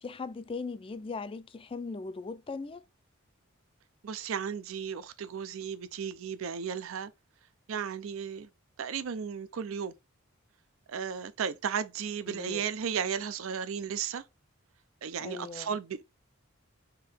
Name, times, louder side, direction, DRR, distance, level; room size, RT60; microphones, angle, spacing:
voice 1, 0.0-2.8 12.3-12.7 15.2-15.8, left 4 dB, 25° left, 0.4 m, -39 dB
voice 2, 4.0-7.1 7.7-8.5 8.8-9.9 10.9-14.2 15.0-16.0, right 7 dB, 70° right, 0.4 m, -34 dB
3.7 x 2.8 x 4.2 m
head